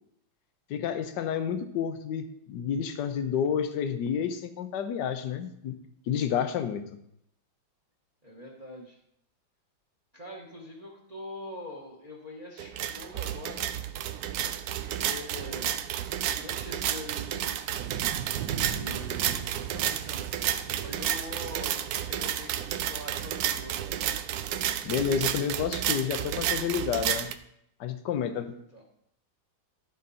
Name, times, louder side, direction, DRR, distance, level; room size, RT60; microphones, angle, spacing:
voice 1, 0.7-5.8 6.1-7.0 24.8-27.3 27.8-28.5, left 8 dB, 65° left, 8 dB, 1.3 m, -30 dB
voice 2, 8.2-9.0 10.1-13.6 14.6-15.7 16.3-17.6 18.4-20.2 20.7-24.2 28.0-28.8, left 1 dB, 25° right, -1 dB, 1.3 m, -44 dB
sound 1, 12.6-27.3, right 11 dB, 85° right, 0.8 m, -31 dB
sound 2, 17.8-21.5 23.4-23.6, right 8 dB, 70° right, 1.2 m, -39 dB
13.5 x 5.0 x 4.2 m, 0.74 s
omnidirectional pair, 2.2 m